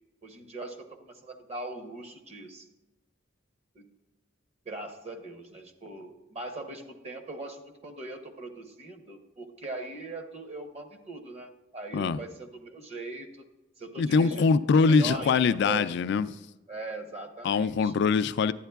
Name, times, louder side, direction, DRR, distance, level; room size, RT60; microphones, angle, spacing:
voice 1, 0.2-2.7 3.7-3.8 4.6-13.4 13.8-15.9 16.7-17.9, right 2 dB, 35° right, 0.9 m, -40 dB
voice 2, 14.0-16.3 17.4-18.5, left 5 dB, 60° left, 0.3 m, -23 dB
11.5 x 9.0 x 2.3 m
head